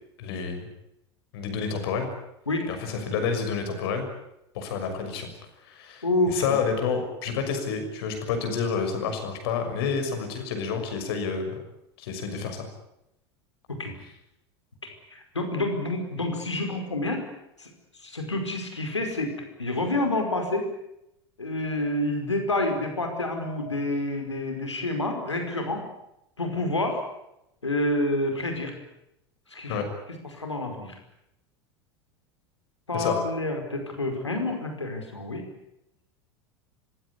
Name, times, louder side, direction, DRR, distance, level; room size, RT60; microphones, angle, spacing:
voice 1, 0.2-0.7 1.3-2.1 2.7-4.1 4.5-5.3 5.6-11.6 12.0-12.7 29.7-29.9 32.9-33.1, left 5 dB, 60° left, 6 dB, 6.3 m, -29 dB
voice 2, 6.0-6.6 13.7-14.0 14.8-17.3 17.6-17.7 18.0-20.7 21.4-25.8 26.4-27.0 27.6-28.7 29.5-29.8 30.3-31.0 32.9-35.4, left 2 dB, 85° left, 4 dB, 5.1 m, -28 dB
25.5 x 16.5 x 9.8 m, 0.83 s
figure-of-eight pair, 80°, 14 cm